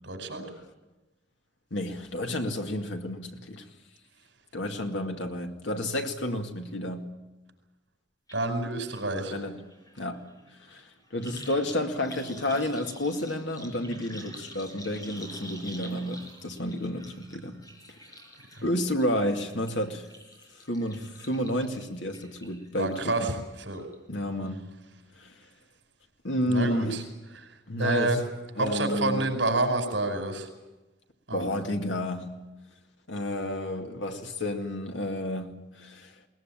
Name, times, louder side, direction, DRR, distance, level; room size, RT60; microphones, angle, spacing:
voice 1, 0.0-0.4 8.3-9.3 18.6-18.7 22.8-23.3 23.6-23.8 26.5-27.0 27.3-27.5 27.8-28.2 28.6-30.5 31.3-31.4, right 2 dB, 75° right, 5.1 m, -28 dB
voice 2, 1.7-3.7 4.5-7.1 9.2-9.6 10.0-10.2 10.6-17.6 18.6-20.1 20.7-23.2 24.1-24.7 25.2-25.3 26.2-27.0 27.7-28.2 28.6-29.2 31.3-32.3 33.1-36.1, left 1 dB, 80° left, 2.3 m, -31 dB
sound 1, 8.3-8.4 8.7-23.3 23.7-24.2 24.5-24.6, equal, 20° left, 5.2 m, -47 dB
21.0 x 19.5 x 8.9 m
head